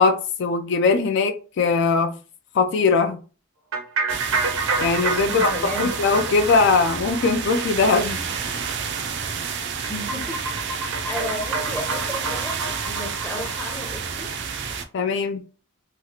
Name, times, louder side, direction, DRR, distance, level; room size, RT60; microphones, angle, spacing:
voice 1, 0.0-2.1 2.5-3.2 4.8-5.5 5.8-8.2 14.9-15.4, left 4 dB, 55° left, 0.3 m, -20 dB
sound 1, 3.7-13.8, right 3 dB, 90° right, 0.7 m, -29 dB
sound 2, 4.1-14.8, right 6 dB, 55° right, 0.4 m, -30 dB
voice 2, 5.3-6.0 9.9-14.3, equal, 10° left, 0.6 m, -34 dB
2.9 x 2.4 x 2.8 m
head